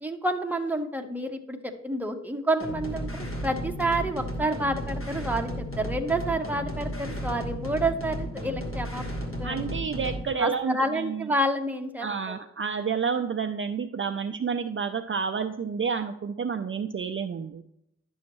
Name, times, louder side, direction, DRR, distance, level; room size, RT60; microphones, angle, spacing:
voice 1, 0.0-9.1 9.4-9.6 10.4-12.1, right 1 dB, 5° right, 4 dB, 0.9 m, -29 dB
sound 1, 2.6-10.3, equal, 45° left, 1.6 m, -34 dB
voice 2, 9.4-11.3 12.0-17.6, right 6 dB, 45° right, 8 dB, 0.4 m, -30 dB
10.5 x 6.3 x 3.0 m, 0.78 s
wide cardioid pair, 55°, 29 cm